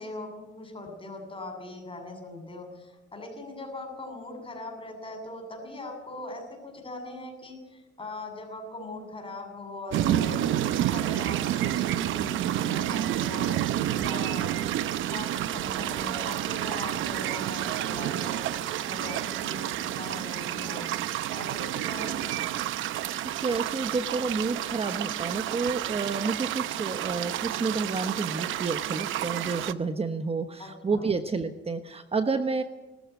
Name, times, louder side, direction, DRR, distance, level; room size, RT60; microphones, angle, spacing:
voice 1, 0.0-13.5 14.0-14.6 15.1-18.5 18.9-20.9 21.3-22.4 30.6-31.1, left 2 dB, 25° left, 4 dB, 7.1 m, -40 dB
sound 1, 9.9-29.7, right 12 dB, 85° right, 0.8 m, -30 dB
voice 2, 23.4-32.6, right 4 dB, 30° right, 8 dB, 1.2 m, -30 dB
20.5 x 14.0 x 9.6 m, 1.1 s
cardioid pair, 90°, 20 cm